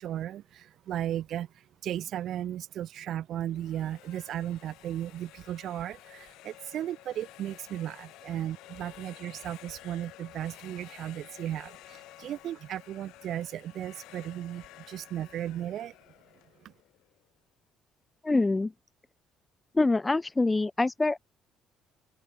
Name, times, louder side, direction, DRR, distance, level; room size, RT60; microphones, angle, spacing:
voice 1, 0.0-15.9 16.6-16.7, right 11 dB, 60° right, 0.5 m, -36 dB
sound 1, 3.4-17.3, left 17 dB, 90° left, 2.3 m, -52 dB
voice 2, 18.2-18.7 19.7-21.3, left 2 dB, 15° left, 0.3 m, -25 dB
open air
cardioid pair, 145°, 0 cm